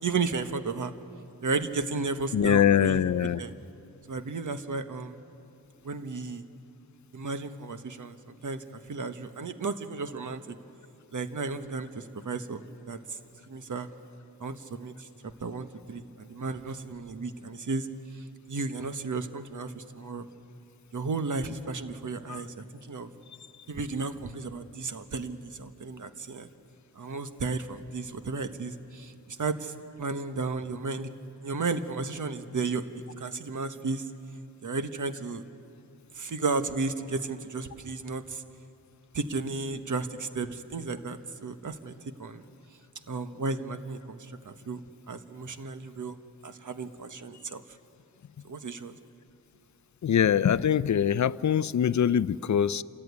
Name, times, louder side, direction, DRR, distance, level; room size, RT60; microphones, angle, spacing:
voice 1, 0.0-0.9 1.4-3.5 4.1-5.2 5.8-6.4 7.1-10.4 11.1-13.2 13.5-13.9 14.4-15.1 15.4-17.9 18.1-20.3 20.9-23.1 23.7-26.5 27.0-29.7 30.0-31.1 31.4-32.8 33.2-34.0 34.6-35.4 36.1-38.4 39.1-41.9 42.2-42.4 43.1-44.8 45.1-46.2 46.4-47.6 48.4-48.9, right 4 dB, 50° right, 9 dB, 1.4 m, -34 dB
voice 2, 2.3-3.4 22.3-22.4 50.0-52.8, left 9 dB, 50° left, 18 dB, 0.6 m, -23 dB
28.5 x 14.0 x 9.6 m, 2.7 s
cardioid pair, 65°, 38 cm